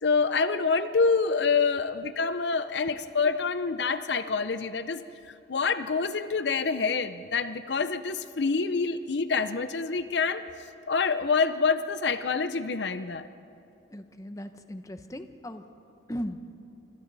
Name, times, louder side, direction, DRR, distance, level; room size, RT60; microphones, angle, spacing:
voice 1, 0.0-5.0 5.5-10.4 10.9-13.3, left 4 dB, 70° left, 12 dB, 0.7 m, -26 dB
voice 2, 13.9-15.6 16.1-16.5, equal, 20° left, 8 dB, 0.8 m, -37 dB
26.0 x 25.5 x 4.1 m, 2.7 s
head